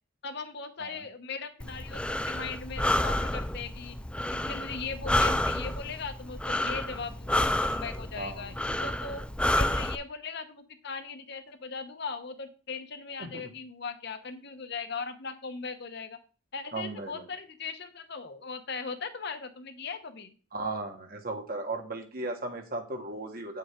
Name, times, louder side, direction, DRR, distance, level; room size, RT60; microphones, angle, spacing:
voice 1, 0.2-4.0 4.3-8.5 8.8-9.2 9.5-16.2 16.5-20.3, left 5 dB, 55° left, 8 dB, 1.0 m, -39 dB
Breathing, 1.6-9.9, left 1 dB, 5° left, 0.3 m, -30 dB
voice 2, 8.1-8.6 13.2-13.5 16.7-17.2 20.5-23.6, right 2 dB, 45° right, 4 dB, 1.7 m, -36 dB
9.1 x 7.5 x 3.7 m, 0.37 s
head